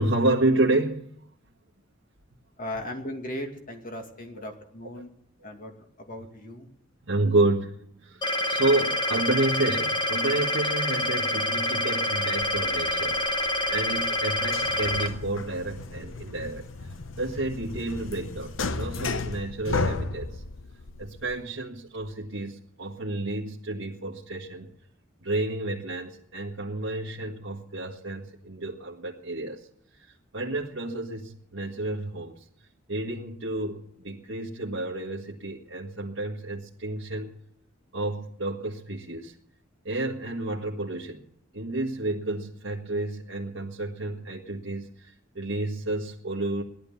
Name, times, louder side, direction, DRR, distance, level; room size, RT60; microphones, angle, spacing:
voice 1, 0.0-1.3 4.4-4.5 7.0-16.7 17.2-20.4 21.0-24.7 25.2-29.7 30.0-30.1 30.3-32.4 32.9-37.4 37.9-39.3 39.8-41.3 41.5-46.6, right 2 dB, 75° right, -2 dB, 1.6 m, -30 dB
voice 2, 2.6-5.1 5.4-5.7 6.0-6.7, left 1 dB, 45° left, 3 dB, 2.5 m, -37 dB
sound 1, 8.2-15.1, left 1 dB, 25° left, 1.1 m, -27 dB
sound 2, 12.4-21.4, left 3 dB, 70° left, 0.9 m, -35 dB
17.5 x 12.0 x 7.1 m, 0.72 s
head